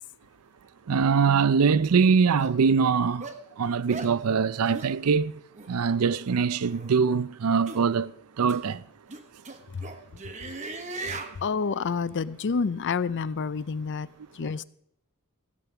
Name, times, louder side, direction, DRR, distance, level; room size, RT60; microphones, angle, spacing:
voice 1, 0.9-3.3 3.6-5.3 5.7-8.1 8.4-8.8, right 5 dB, 80° right, 0.5 m, -23 dB
sound 1, 1.6-1.7 2.4-2.6 3.2-3.4 3.9-4.1 4.7-4.9 5.6-5.7 6.6-6.9 7.7-7.8 8.5-8.6 9.1-11.4, right 3 dB, 30° right, 1.0 m, -38 dB
voice 2, 11.4-14.1 14.4-14.6, left 5 dB, 55° left, 0.5 m, -28 dB
15.5 x 7.2 x 5.9 m
head